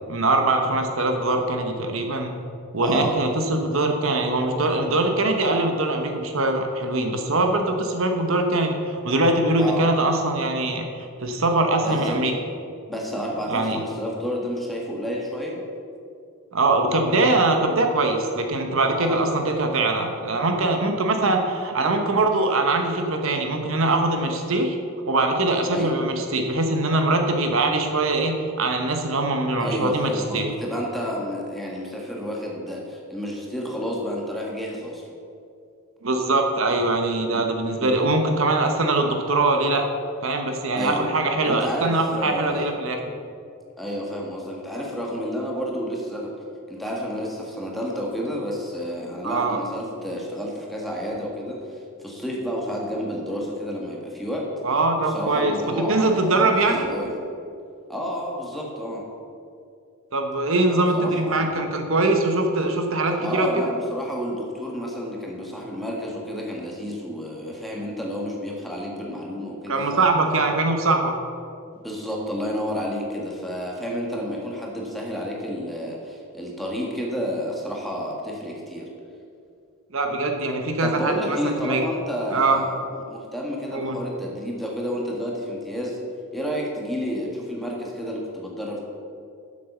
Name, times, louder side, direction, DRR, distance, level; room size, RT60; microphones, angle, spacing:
voice 1, 0.1-2.3 2.7-12.3 13.5-13.8 16.5-24.8 25.1-30.5 36.0-39.8 40.2-43.0 49.2-49.6 54.6-55.5 55.9-56.9 60.1-63.7 69.7-71.2 79.9-81.8 82.3-82.6 83.7-84.0, right 2 dB, 65° right, 4 dB, 1.0 m, -22 dB
voice 2, 2.8-3.2 9.6-9.9 11.8-12.3 12.9-15.6 19.0-19.2 25.7-25.9 29.6-35.1 37.6-37.9 40.7-41.1 41.4-42.7 43.8-46.3 46.7-51.6 52.0-54.5 55.0-57.2 57.9-59.0 60.7-61.7 63.1-70.1 71.8-78.9 80.8-82.8 83.1-86.0 86.3-88.8, equal, ahead, -3 dB, 1.6 m, -30 dB
7.5 x 7.5 x 6.8 m, 2.5 s
head